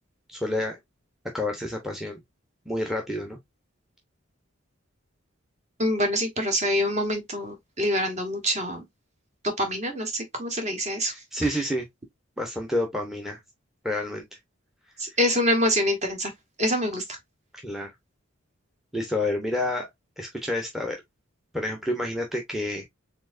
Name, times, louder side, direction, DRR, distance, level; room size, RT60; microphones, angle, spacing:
voice 1, 0.3-0.8 1.3-2.2 2.7-3.4 11.3-11.9 12.4-13.4 13.8-14.2 17.6-17.9 18.9-19.9 20.2-21.0 21.5-22.8, left 1 dB, ahead, 0.8 m, -29 dB
voice 2, 5.8-8.8 9.4-11.1 15.0-16.3 16.6-17.2, equal, 30° right, 1.2 m, -25 dB
4.4 x 3.6 x 2.5 m
head